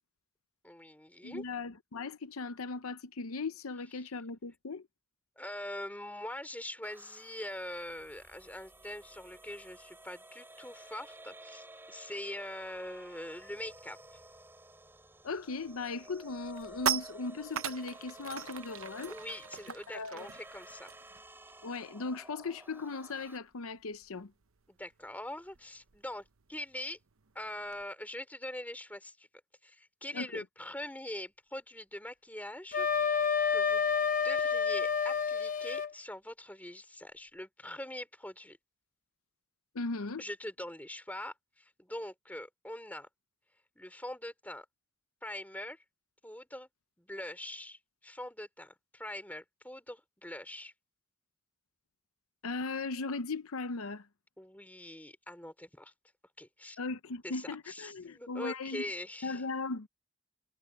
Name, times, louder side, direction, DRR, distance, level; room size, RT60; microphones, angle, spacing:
voice 1, 0.6-1.4 4.0-4.1 5.4-14.0 19.1-20.9 24.7-27.0 27.3-29.3 29.6-33.2 33.5-33.9 34.2-38.6 40.2-43.1 43.8-44.6 45.2-45.8 46.2-46.7 47.0-50.7 54.4-55.9 56.4-56.8 57.2-59.4, left 1 dB, 5° left, 4.2 m, -43 dB
voice 2, 1.2-4.9 15.2-19.1 19.9-20.3 21.6-24.3 30.1-30.4 39.7-40.2 52.4-54.1 56.8-58.8 59.2-59.9, left 3 dB, 75° left, 0.7 m, -38 dB
sound 1, 6.8-23.4, right 1 dB, 10° right, 6.5 m, -53 dB
sound 2, 15.5-15.7 16.1-22.0 22.3-22.5 22.8-27.8, right 8 dB, 70° right, 0.9 m, -41 dB
Wind instrument woodwind instrument, 32.7-35.9, left 6 dB, 40° left, 1.0 m, -29 dB
head